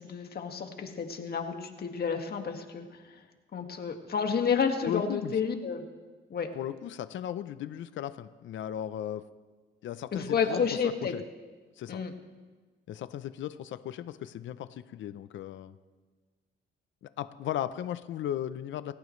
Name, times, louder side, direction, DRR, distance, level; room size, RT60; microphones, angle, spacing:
voice 1, 0.0-2.9 3.1-3.2 3.5-5.8 6.3-6.5 10.1-11.1 11.9-12.1, left 6 dB, 50° left, 4 dB, 1.9 m, -30 dB
voice 2, 4.8-5.3 6.5-9.2 9.8-11.2 11.8-12.0 12.9-15.8 17.2-18.9, left 11 dB, 70° left, 12 dB, 0.7 m, -36 dB
28.5 x 14.5 x 3.2 m, 1.4 s
cardioid pair, 90°, 20 cm